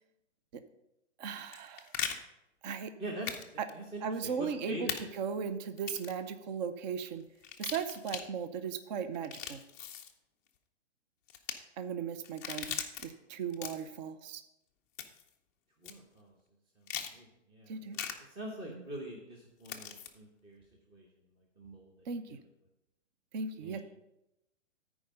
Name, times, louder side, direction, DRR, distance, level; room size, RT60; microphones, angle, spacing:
voice 1, 1.2-1.9 2.6-2.9 3.6-3.7 4.0-7.2 7.6-9.6 11.8-14.4 17.7-18.0 18.7-18.8 22.1-22.4 23.3-23.8, right 6 dB, 35° right, 10 dB, 0.6 m, -37 dB
sound 1, 1.4-2.2 3.3-3.4 3.7-3.8 4.9-5.0 5.8-6.2 7.4-8.2 9.1-10.1 11.3-11.5 12.2-13.1 13.5-14.0 15.0-15.3 15.8-15.9 16.9-17.1 17.9-18.1 19.6-20.1, left 8 dB, 15° left, 0.4 m, -39 dB
voice 2, 3.0-5.1 15.8-16.3 16.8-18.0 18.3-20.6 20.9-21.1 21.6-22.0 22.3-22.4 23.6-23.8, right 1 dB, 15° right, -1 dB, 1.0 m, -44 dB
13.0 x 4.8 x 5.4 m, 0.88 s
hypercardioid pair, 145°, 37 cm